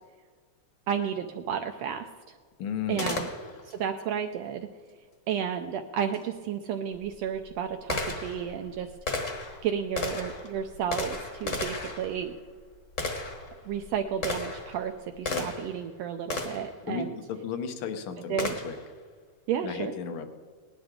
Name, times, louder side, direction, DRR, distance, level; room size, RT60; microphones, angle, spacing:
voice 1, 0.9-2.3 2.9-3.3 3.6-4.7 5.3-12.3 13.7-17.1 18.3-18.6 19.5-19.9, right 8 dB, 75° right, 6 dB, 1.6 m, -32 dB
voice 2, 2.6-3.2 15.3-15.5 16.8-18.8 19.6-20.3, left 7 dB, 65° left, 7 dB, 1.4 m, -34 dB
Gunshot gunfire, 3.0-3.8 6.1-6.2 6.9-15.8 16.3-16.8 18.4-18.9, left 3 dB, 35° left, 1.3 m, -35 dB
19.0 x 11.5 x 3.7 m, 1.5 s
omnidirectional pair, 3.4 m